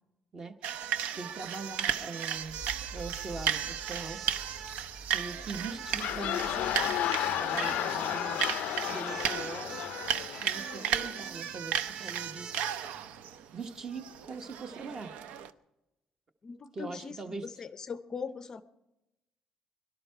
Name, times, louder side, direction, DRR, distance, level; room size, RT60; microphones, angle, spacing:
voice 1, 0.3-0.7 1.2-2.6 2.9-4.2 5.1-6.7 7.2-8.4 8.9-10.0 10.4-12.5 13.5-15.1 16.7-17.7, right 4 dB, 25° right, 0.9 m, -41 dB
sound 1, 0.6-15.5, right 9 dB, 85° right, 0.7 m, -35 dB
sound 2, 2.3-13.2, right 3 dB, 65° right, 2.5 m, -51 dB
voice 2, 5.5-5.8 16.4-18.6, left 5 dB, 30° left, 0.5 m, -41 dB
sound 3, 5.7-11.3, left 13 dB, 80° left, 0.4 m, -33 dB
22.5 x 12.5 x 4.6 m
cardioid pair, 175°, 2 cm